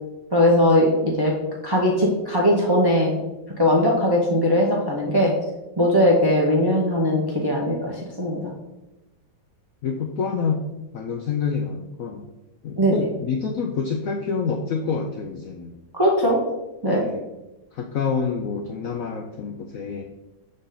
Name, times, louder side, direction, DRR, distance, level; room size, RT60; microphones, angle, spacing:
voice 1, 0.3-1.3 1.6-3.2 3.6-5.3 5.8-8.5 12.8-12.9 15.9-16.4 16.8-17.0, equal, 40° right, -3 dB, 0.3 m, -19 dB
voice 2, 9.8-10.6 10.9-12.3 12.6-15.8 16.9-17.3 17.7-20.1, left 5 dB, 80° left, 2 dB, 0.7 m, -27 dB
6.8 x 3.9 x 3.7 m, 1.0 s
omnidirectional pair, 2.0 m